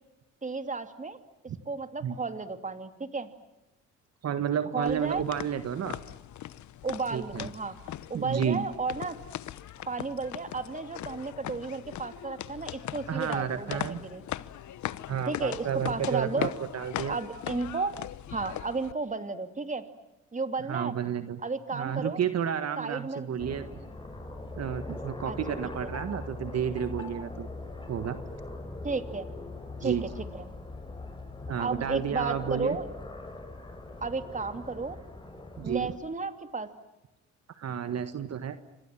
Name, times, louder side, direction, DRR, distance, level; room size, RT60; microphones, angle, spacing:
voice 1, 0.4-1.2 1.7-3.3 4.7-5.2 6.8-9.2 9.9-14.2 15.3-16.5 17.1-17.9 18.3-19.9 20.3-20.9 21.4-22.2 22.8-23.3 25.2-25.4 28.8-29.3 29.8-30.0 30.3-30.5 31.6-32.9 34.0-35.0 35.6-36.7, right 4 dB, 25° right, 9 dB, 2.7 m, -33 dB
voice 2, 4.2-6.0 7.1-7.5 8.1-8.6 13.1-14.0 15.1-17.2 20.7-21.4 21.7-23.8 24.6-27.5 27.9-28.2 29.8-30.0 31.5-32.8 35.6-35.9 37.6-38.6, right 8 dB, 55° right, 10 dB, 1.6 m, -31 dB
sound 1, 4.8-18.9, left 12 dB, 70° left, 1.1 m, -39 dB
sound 2, 23.4-36.0, left 2 dB, 15° left, 6.5 m, -41 dB
29.0 x 26.0 x 7.6 m, 0.95 s
cardioid pair, 90°, 30 cm